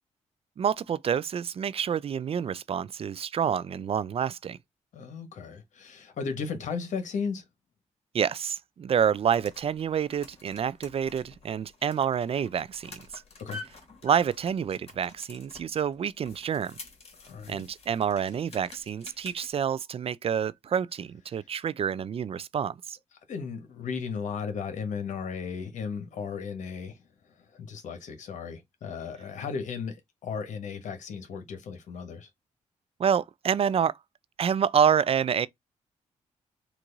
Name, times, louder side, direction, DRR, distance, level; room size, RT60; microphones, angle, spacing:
voice 1, 0.6-4.6 8.1-13.2 14.0-16.8 17.5-23.0 33.0-34.0 34.4-35.5, right 8 dB, 50° right, 0.4 m, -28 dB
voice 2, 4.9-7.4 13.4-13.6 17.2-17.7 23.3-27.0 27.5-32.3, left 5 dB, 75° left, 1.3 m, -35 dB
sound 1, 9.0-19.5, left 3 dB, 55° left, 2.2 m, -49 dB
4.5 x 2.6 x 3.9 m
cardioid pair, 75°, 13 cm